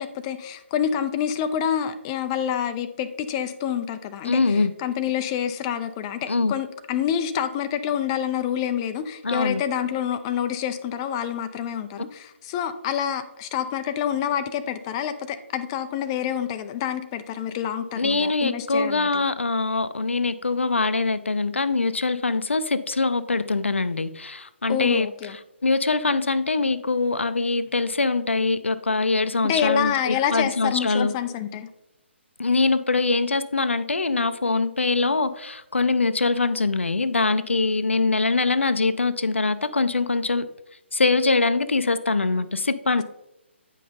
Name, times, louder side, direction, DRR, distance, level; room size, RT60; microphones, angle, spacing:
voice 1, 0.0-19.2 24.7-25.4 29.4-31.7, left 9 dB, 20° left, 9 dB, 0.4 m, -27 dB
voice 2, 4.2-4.7 6.3-6.5 9.2-9.6 18.0-25.1 25.6-31.1 32.4-40.5 40.9-43.0, left 3 dB, 70° left, 13 dB, 0.5 m, -23 dB
9.1 x 5.5 x 3.8 m, 0.89 s
figure-of-eight pair, 135°, 7 cm